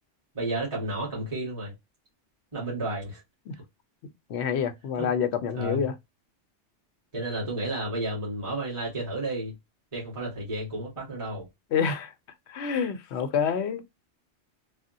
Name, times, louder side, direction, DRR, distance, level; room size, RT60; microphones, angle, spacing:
voice 1, 0.3-1.7 2.5-3.2 5.0-5.1 5.5-5.9 7.1-9.5 9.9-11.5, right 1 dB, 25° right, 1.5 m, -32 dB
voice 2, 4.3-5.9 11.7-12.1 12.5-13.8, left 7 dB, 70° left, 0.9 m, -27 dB
3.4 x 2.1 x 2.6 m
omnidirectional pair, 1.2 m